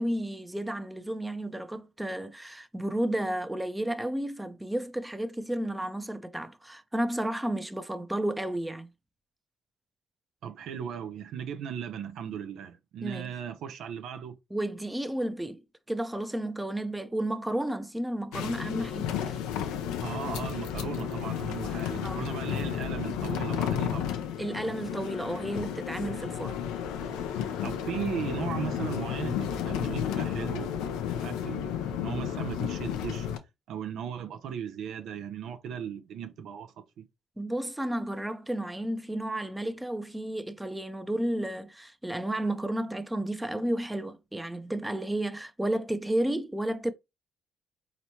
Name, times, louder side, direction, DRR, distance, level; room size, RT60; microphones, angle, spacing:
voice 1, 0.0-8.9 13.0-13.3 14.5-15.6 15.9-19.4 22.0-22.2 24.4-26.6 37.4-46.9, right 1 dB, 10° right, 0.6 m, -32 dB
voice 2, 10.4-14.4 20.0-24.1 27.0-27.3 27.6-33.3 33.7-37.0, right 8 dB, 70° right, 0.5 m, -37 dB
sound 1, 18.3-33.4, left 9 dB, 80° left, 0.5 m, -32 dB
4.2 x 3.0 x 2.8 m
hypercardioid pair, 55°, 0 cm